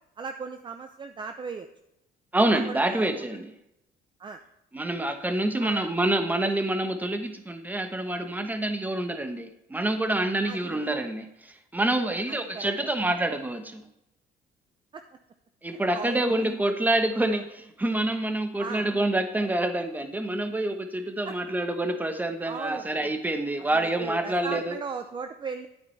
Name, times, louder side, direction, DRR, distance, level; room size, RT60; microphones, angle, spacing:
voice 1, 0.2-1.7 2.5-3.4 4.2-4.4 5.6-5.9 10.4-10.9 12.3-12.9 14.9-15.0 15.7-16.5 17.3-17.4 18.6-18.8 21.2-21.4 22.4-22.8 23.7-25.7, right 5 dB, 30° right, 7 dB, 0.6 m, -37 dB
voice 2, 2.3-3.5 4.7-13.8 15.6-24.8, right 1 dB, 10° right, 7 dB, 1.1 m, -27 dB
11.0 x 8.9 x 3.2 m, 0.84 s
cardioid pair, 110°, 17 cm